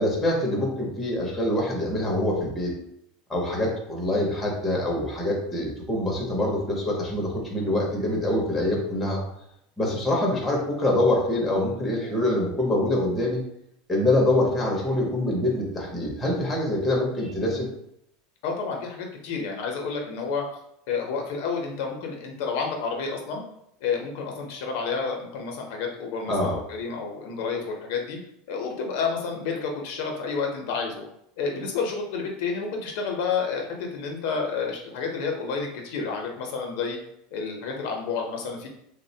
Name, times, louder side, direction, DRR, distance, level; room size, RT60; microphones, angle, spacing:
voice 1, 0.0-2.7 3.3-9.2 9.8-13.4 13.9-17.7 26.3-26.6, left 1 dB, 10° left, -3 dB, 0.6 m, -25 dB
voice 2, 18.4-20.4 20.9-23.4 23.8-28.2 28.5-31.0 31.4-37.0 37.3-38.7, left 5 dB, 55° left, 1 dB, 0.5 m, -30 dB
3.4 x 2.0 x 2.6 m, 0.76 s
supercardioid pair, 175°, 0 cm